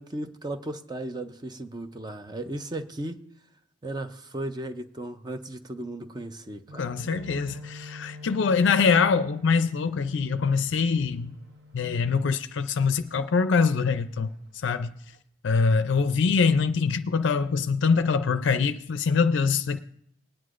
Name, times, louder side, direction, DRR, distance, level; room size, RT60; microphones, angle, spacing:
voice 1, 0.0-3.2 3.8-6.8, right 1 dB, 20° right, 0.5 m, -35 dB
sound 1, 6.7-13.2 13.5-13.8 14.2-14.7 15.1-15.2, left 2 dB, 55° right, 0.9 m, -46 dB
voice 2, 6.8-11.4 11.7-14.3 14.6-14.9 15.4-19.8, left 5 dB, 65° left, 0.4 m, -24 dB
20.0 x 9.5 x 2.5 m
head